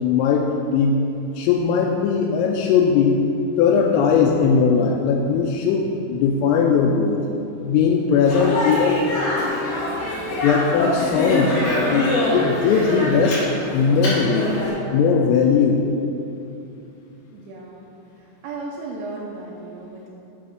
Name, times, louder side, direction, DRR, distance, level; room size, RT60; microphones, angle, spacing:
voice 1, 0.0-1.0 1.4-3.2 3.6-7.2 7.6-9.0 10.4-11.5 11.9-12.1 12.3-14.5 14.9-15.8, left 6 dB, 90° left, 1 dB, 3.2 m, -19 dB
Speech, 8.2-14.7, left 1 dB, 55° left, 3.8 m, -24 dB
voice 2, 17.3-17.8 18.2-20.1, right 3 dB, 80° right, -5 dB, 3.3 m, -35 dB
10.5 x 4.2 x 6.2 m, 2.7 s
omnidirectional pair, 5.8 m